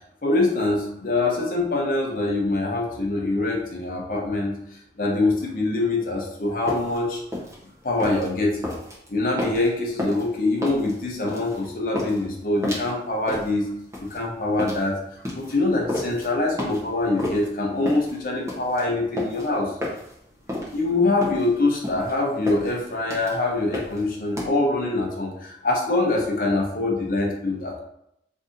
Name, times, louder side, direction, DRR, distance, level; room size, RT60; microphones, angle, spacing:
voice 1, 0.2-4.5 5.0-7.2 7.8-8.7 9.1-13.7 14.0-19.7 20.7-27.8, left 2 dB, 50° left, -1 dB, 0.7 m, -24 dB
sound 1, 6.5-24.5, left 1 dB, 15° right, 0.7 m, -32 dB
2.7 x 2.6 x 3.7 m, 0.76 s
head